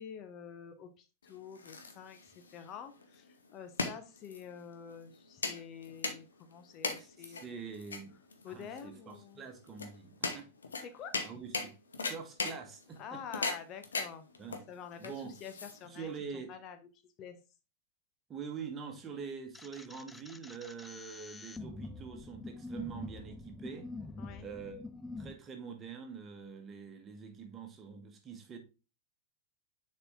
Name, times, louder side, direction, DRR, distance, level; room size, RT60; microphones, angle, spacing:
voice 1, 0.0-7.6 8.4-9.4 10.8-11.4 13.0-16.8 17.0-17.4 24.2-24.5, left 7 dB, 35° left, 0.7 m, -48 dB
sound 1, 1.2-16.1, left 4 dB, 70° left, 1.0 m, -40 dB
voice 2, 7.0-8.2 8.5-10.5 11.2-11.7 12.0-13.4 14.4-14.6 15.0-15.3 15.8-16.5 18.3-23.9 24.4-24.8 25.2-28.6, right 6 dB, 25° right, 1.4 m, -45 dB
sound 2, 19.5-25.3, left 3 dB, 10° left, 0.4 m, -45 dB
6.7 x 4.4 x 3.6 m
figure-of-eight pair, 90°, 0 cm